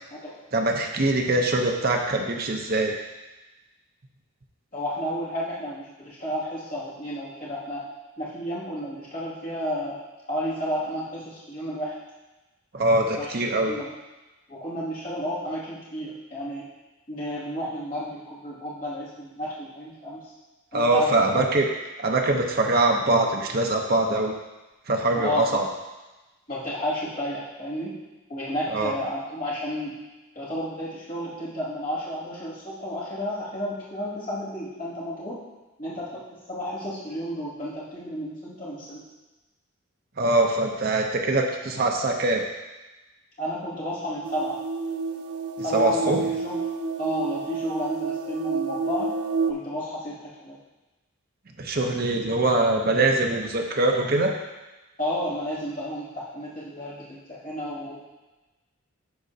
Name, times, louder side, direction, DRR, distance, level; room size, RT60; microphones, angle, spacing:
voice 1, 0.5-2.9 12.7-13.7 20.7-21.7 22.0-24.3 24.9-25.7 28.7-28.9 40.2-42.4 45.7-46.2 51.6-54.3, right 2 dB, 45° right, 2 dB, 0.7 m, -23 dB
voice 2, 4.7-7.8 8.2-10.0 10.3-12.0 13.2-13.3 13.7-13.9 14.5-16.6 17.1-20.2 20.7-21.1 25.2-25.4 26.5-27.9 28.3-29.9 30.4-35.4 35.8-36.2 36.5-39.0 43.4-44.6 45.6-46.2 46.4-46.6 47.0-49.1 49.4-50.6 55.0-58.1, equal, 40° left, -9 dB, 2.3 m, -32 dB
sound 1, 44.2-49.5, right 4 dB, 90° right, 0.5 m, -29 dB
11.5 x 4.3 x 2.8 m, 1.1 s
head